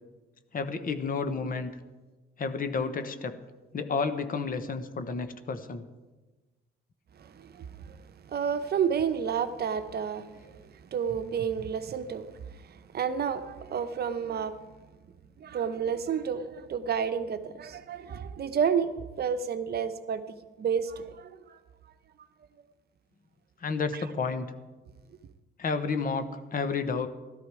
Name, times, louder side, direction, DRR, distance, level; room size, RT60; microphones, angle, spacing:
voice 1, 0.5-1.7 2.4-3.4 3.7-5.9 23.6-24.5 25.6-27.1, left 4 dB, 45° left, 1.1 m, -31 dB
voice 2, 7.2-14.6 15.4-18.9 19.2-21.6 23.9-24.0, right 7 dB, 55° right, 0.8 m, -31 dB
14.0 x 12.5 x 4.8 m
cardioid pair, 90°, 20 cm